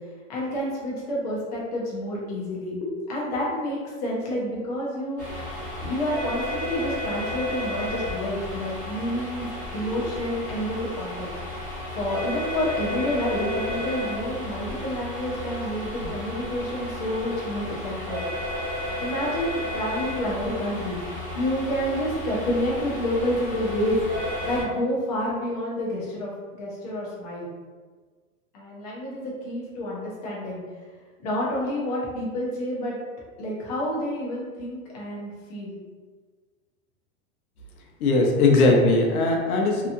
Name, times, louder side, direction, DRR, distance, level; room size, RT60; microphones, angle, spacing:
voice 1, 0.3-5.5 5.8-11.3 12.0-18.2 19.0-21.0 21.3-24.0 24.4-27.5 28.5-30.6 31.2-33.0 33.4-35.8, equal, 30° left, -5 dB, 0.5 m, -29 dB
sound 1, 5.2-24.6, left 1 dB, 20° right, 0.8 m, -33 dB
voice 2, 38.0-39.9, left 2 dB, 80° left, 1 dB, 0.7 m, -19 dB
2.8 x 2.3 x 2.5 m, 1.5 s
supercardioid pair, 165°, 43 cm